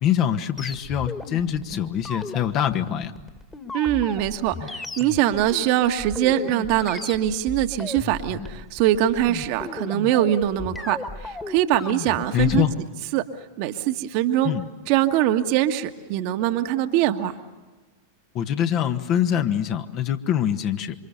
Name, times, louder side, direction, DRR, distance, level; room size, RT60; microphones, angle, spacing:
voice 1, 0.0-3.1 12.3-12.7 14.4-14.6 18.3-20.9, left 10 dB, 35° left, 8 dB, 1.6 m, -24 dB
sound 1, 0.6-12.8, left 3 dB, 10° left, 2.1 m, -35 dB
voice 2, 3.7-12.6 13.1-13.2 13.6-14.5 14.9-17.3, right 12 dB, 45° right, 7 dB, 1.5 m, -23 dB
27.5 x 25.5 x 7.0 m, 1.2 s
figure-of-eight pair, 90°, 0 cm